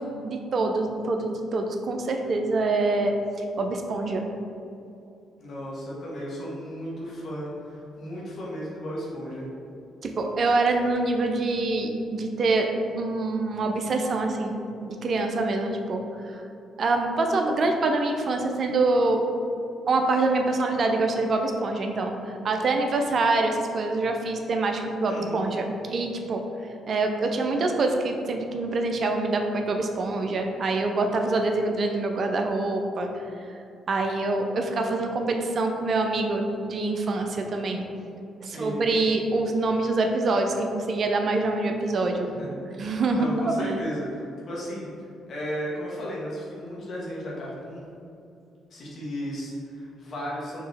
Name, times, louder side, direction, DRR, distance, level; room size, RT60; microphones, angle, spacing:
voice 1, 0.0-3.1 3.6-4.2 10.0-12.7 12.9-16.4 16.8-19.3 19.9-26.4 26.9-33.1 33.9-37.8 38.5-42.3 42.8-43.8, right 2 dB, 55° right, 4 dB, 0.4 m, -25 dB
voice 2, 5.4-9.5 25.1-25.4 38.4-38.8 42.2-47.8 48.7-50.6, equal, 55° left, -5 dB, 1.3 m, -35 dB
4.4 x 2.9 x 3.3 m, 2.6 s
hypercardioid pair, 45°, 0 cm